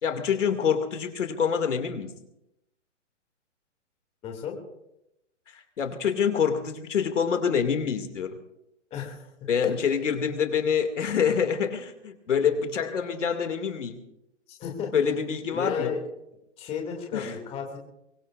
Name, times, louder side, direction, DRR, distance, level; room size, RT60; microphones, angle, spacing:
voice 1, 0.0-2.1 5.5-8.4 9.5-14.0 14.9-16.0 17.1-17.3, left 7 dB, 80° left, 6 dB, 2.4 m, -26 dB
voice 2, 4.2-4.6 8.9-9.3 9.6-9.7 14.5-14.9 15.5-16.0 16.6-17.8, left 7 dB, 15° left, 1 dB, 2.5 m, -33 dB
23.0 x 22.5 x 2.5 m, 0.85 s
hypercardioid pair, 155°, 37 cm